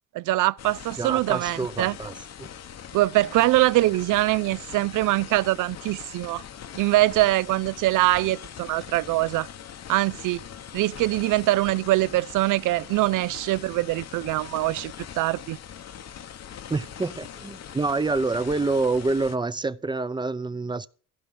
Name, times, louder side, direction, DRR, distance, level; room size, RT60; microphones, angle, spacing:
voice 1, 0.1-1.9 2.9-6.4 6.8-9.5 9.9-10.4 10.7-15.6, right 17 dB, 70° right, 0.5 m, -23 dB
sound 1, 0.6-19.4, left 9 dB, 55° left, 1.0 m, -42 dB
voice 2, 1.0-2.5 16.7-20.9, right 3 dB, 15° right, 0.6 m, -27 dB
15.5 x 5.3 x 7.5 m
cardioid pair, 90°, 32 cm